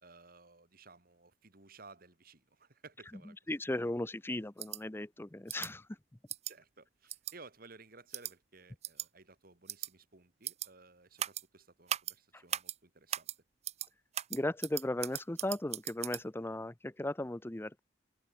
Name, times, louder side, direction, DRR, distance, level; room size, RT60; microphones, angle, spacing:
voice 1, 0.0-3.4 6.4-13.3, right 3 dB, 50° right, 2.6 m, -57 dB
voice 2, 3.5-5.9 12.3-12.4 14.3-17.8, left 1 dB, 15° left, 0.6 m, -36 dB
sound 1, 4.6-4.8 5.5-5.7 6.3-6.5 7.1-7.3 8.1-8.3 8.8-9.1 9.7-9.9 10.4-10.7 11.2-11.4 11.9-12.1 12.5-12.7 13.1-13.3 13.6-13.9 14.1-16.2, right 11 dB, 35° right, 0.5 m, -38 dB
head